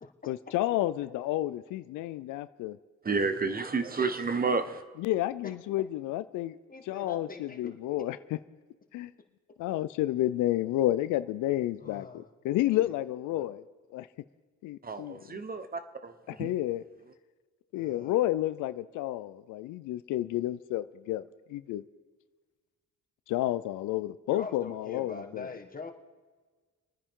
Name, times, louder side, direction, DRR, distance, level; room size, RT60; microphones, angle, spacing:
voice 1, 0.2-2.8 5.0-6.6 6.9-8.2 8.9-9.1 9.6-13.6 13.9-14.1 14.6-15.2 16.4-16.8 17.7-21.2 21.5-21.8 23.3-25.5, left 14 dB, 90° left, 0.5 m, -30 dB
voice 2, 3.0-4.8 14.8-16.5, right 4 dB, 30° right, 1.1 m, -31 dB
voice 3, 6.7-7.7 11.8-12.3 13.3-13.5 17.7-18.1 24.3-25.9, left 4 dB, 30° left, 1.7 m, -43 dB
27.5 x 9.9 x 3.7 m
cardioid pair, 90°, 30 cm